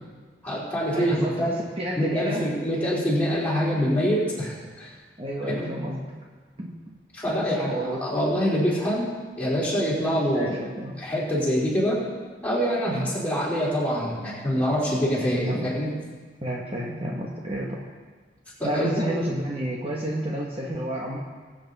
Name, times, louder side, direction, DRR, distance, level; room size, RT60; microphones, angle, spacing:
voice 1, 0.4-1.5 2.0-4.9 5.4-5.7 7.1-9.1 9.4-10.6 11.0-12.0 12.4-15.9 18.6-19.2, equal, 10° left, -8 dB, 3.9 m, -25 dB
voice 2, 0.9-2.5 5.2-6.2 6.6-7.0 7.3-8.1 10.3-11.0 12.9-13.1 15.2-15.7 16.4-17.8 18.6-21.2, right 1 dB, 30° right, -3 dB, 1.2 m, -30 dB
21.0 x 8.1 x 4.1 m, 1.4 s
head